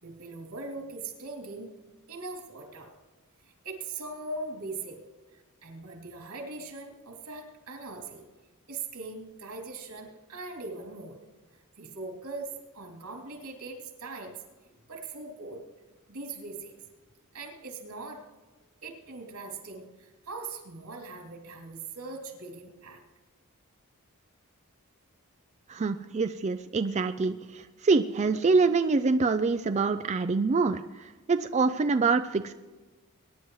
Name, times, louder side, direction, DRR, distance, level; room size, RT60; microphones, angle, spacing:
voice 1, 0.0-1.7 2.1-2.9 3.4-5.0 5.3-8.2 8.7-11.2 11.8-14.4 14.9-15.6 16.1-16.7 17.3-18.3 18.8-23.0 25.8-25.9, right 3 dB, 85° right, 1 dB, 3.1 m, -40 dB
voice 2, 25.7-30.8 31.3-32.5, right 4 dB, 30° right, 9 dB, 0.4 m, -25 dB
22.5 x 10.5 x 3.1 m, 1.2 s
head